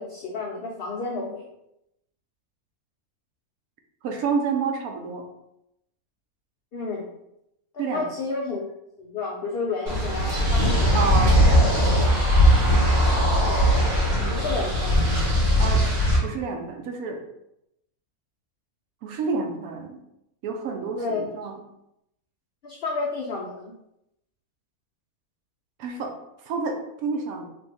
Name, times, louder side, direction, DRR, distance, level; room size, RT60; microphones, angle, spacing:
voice 1, 0.0-1.5 6.7-7.1 7.7-8.6 9.0-11.1 13.5-13.7 14.3-15.0 20.9-21.2 22.6-23.7, left 3 dB, 85° left, -1 dB, 0.5 m, -31 dB
voice 2, 4.0-5.2 7.8-8.1 10.9-12.0 14.2-14.5 15.6-15.9 16.2-17.2 19.0-20.0 20.4-21.6 25.8-26.1 26.4-27.4, right 4 dB, 75° right, 3 dB, 1.0 m, -29 dB
sound 1, 9.9-16.2, equal, 55° right, 1.6 m, -19 dB
3.2 x 2.5 x 3.3 m, 0.82 s
omnidirectional pair, 1.6 m